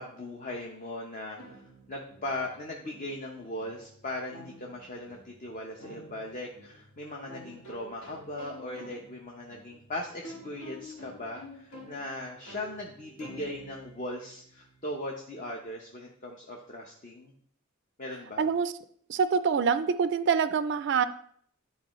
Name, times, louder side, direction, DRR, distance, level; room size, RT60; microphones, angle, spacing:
voice 1, 0.0-17.3 18.0-18.5, left 1 dB, 35° left, 0 dB, 0.7 m, -39 dB
sound 1, 1.4-14.9, equal, 70° left, 1.9 m, -49 dB
voice 2, 18.4-18.7 19.1-21.0, right 6 dB, 55° right, 13 dB, 0.3 m, -25 dB
11.0 x 4.2 x 3.1 m, 0.63 s
head